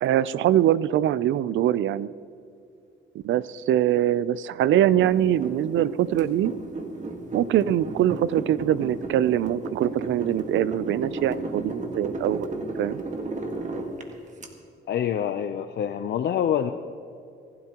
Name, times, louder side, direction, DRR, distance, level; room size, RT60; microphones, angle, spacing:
voice 1, 0.0-2.1 3.1-6.5 7.3-12.5 12.8-13.0, right 11 dB, 75° right, 18 dB, 0.5 m, -23 dB
sound 1, 5.0-14.5, right 2 dB, 35° right, 1.7 m, -34 dB
voice 2, 14.9-16.7, left 9 dB, 60° left, 7 dB, 0.6 m, -26 dB
26.0 x 12.0 x 3.0 m, 2.5 s
cardioid pair, 90°, 20 cm